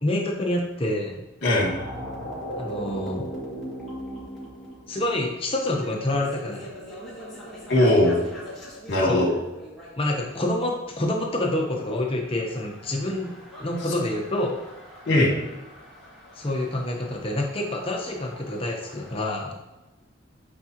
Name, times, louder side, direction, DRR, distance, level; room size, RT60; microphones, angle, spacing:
voice 1, 0.0-1.2 2.6-3.3 4.9-6.7 9.0-9.3 10.0-13.3 13.6-14.6 16.4-19.5, left 1 dB, 25° left, 0 dB, 0.8 m, -27 dB
voice 2, 1.4-1.7 7.7-8.2 8.9-9.3 15.1-15.3, left 1 dB, 55° left, -3 dB, 2.3 m, -19 dB
sound 1, 1.5-10.3 11.8-19.2, equal, ahead, 1.9 m, -40 dB
8.8 x 4.8 x 2.9 m, 1.1 s
head